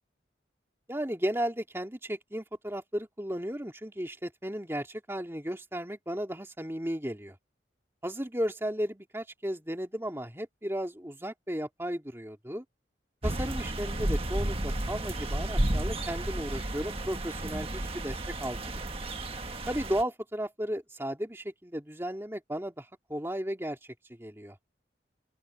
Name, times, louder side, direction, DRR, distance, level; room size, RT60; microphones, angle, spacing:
voice 1, 0.9-7.4 8.0-12.6 13.2-18.7 19.7-23.8 24.2-24.6, equal, 15° right, 2.6 m, -34 dB
sound 1, 13.2-20.0, right 1 dB, 30° right, 1.5 m, -32 dB
open air
head